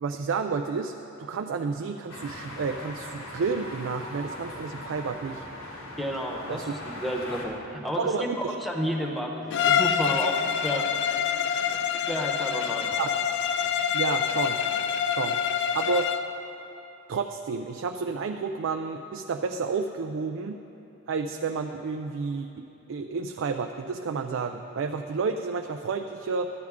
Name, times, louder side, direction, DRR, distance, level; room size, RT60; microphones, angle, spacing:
voice 1, 0.0-5.5 6.5-6.7 8.0-8.6 13.0-13.2 13.9-14.6 15.0-15.4 15.7-16.1 17.1-20.6 21.1-26.5, right 5 dB, 65° right, 5 dB, 0.4 m, -30 dB
sound 1, 2.1-7.5, left 1 dB, 80° left, 1.5 m, -40 dB
voice 2, 6.0-8.1 8.4-10.9 12.1-12.9, equal, ahead, 0 dB, 0.9 m, -31 dB
Bowed string instrument, 9.5-16.3, left 8 dB, 60° left, 0.4 m, -26 dB
13.5 x 10.5 x 3.6 m, 3.0 s
head